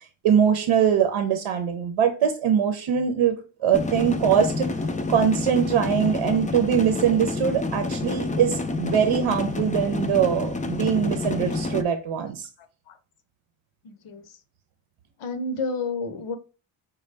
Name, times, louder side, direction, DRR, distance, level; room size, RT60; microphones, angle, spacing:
voice 1, 0.2-4.7 5.1-12.5, right 8 dB, 75° right, 0.7 m, -22 dB
sound 1, 3.7-11.8, left 3 dB, 20° left, 0.3 m, -28 dB
voice 2, 13.8-14.2 15.2-16.4, left 3 dB, 75° left, 0.8 m, -30 dB
5.2 x 2.3 x 3.2 m
cardioid pair, 90°, 49 cm